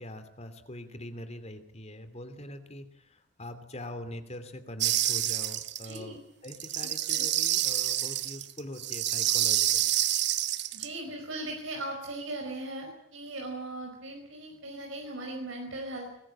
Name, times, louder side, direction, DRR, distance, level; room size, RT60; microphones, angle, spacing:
voice 1, 0.0-9.9, left 1 dB, 35° left, 10 dB, 2.6 m, -43 dB
sound 1, 4.8-6.0 6.5-10.9, right 12 dB, 60° right, 1.1 m, -28 dB
voice 2, 5.8-6.2 6.8-7.3 10.7-16.2, right 2 dB, 90° right, 2 dB, 4.9 m, -39 dB
22.0 x 20.5 x 8.7 m, 0.78 s
head